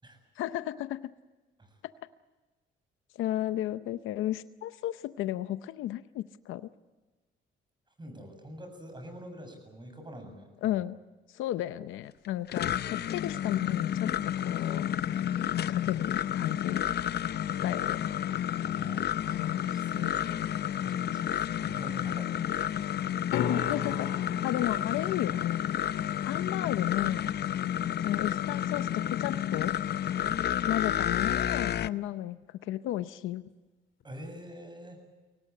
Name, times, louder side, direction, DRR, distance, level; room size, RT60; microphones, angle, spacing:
voice 1, 0.4-1.0 3.1-6.7 10.6-11.0 11.3-16.9 17.6-18.0 19.3-19.6 19.9-20.1 23.3-25.6 26.2-27.3 28.0-29.7 30.7-33.4, left 13 dB, 90° left, 12 dB, 0.7 m, -33 dB
voice 2, 8.0-10.8 18.6-20.5 20.8-23.0 27.8-28.0 30.3-30.5 34.0-35.0, right 1 dB, 25° right, 6 dB, 7.4 m, -47 dB
sound 1, 12.2-31.9, left 10 dB, 55° left, 0.6 m, -31 dB
sound 2, 23.3-29.3 34.0-34.1, left 7 dB, 75° left, 2.7 m, -40 dB
24.0 x 18.0 x 8.7 m, 1.2 s
cardioid pair, 90°, 20 cm